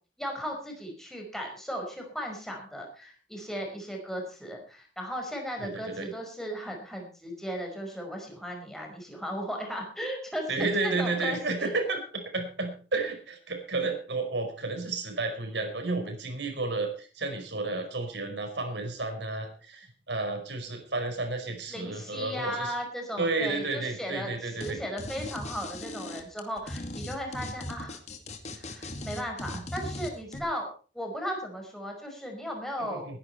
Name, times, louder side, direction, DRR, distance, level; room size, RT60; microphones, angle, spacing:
voice 1, 0.2-11.7 21.7-28.0 28.5-30.7 30.9-33.1, equal, ahead, 1 dB, 5.4 m, -36 dB
voice 2, 5.6-6.1 10.5-22.7 23.2-24.8 29.5-29.6 32.8-33.2, right 3 dB, 75° right, 6 dB, 4.9 m, -32 dB
sound 1, 24.6-24.7 25.0-30.4, left 1 dB, 40° left, 2.3 m, -38 dB
20.0 x 11.0 x 4.4 m, 0.38 s
head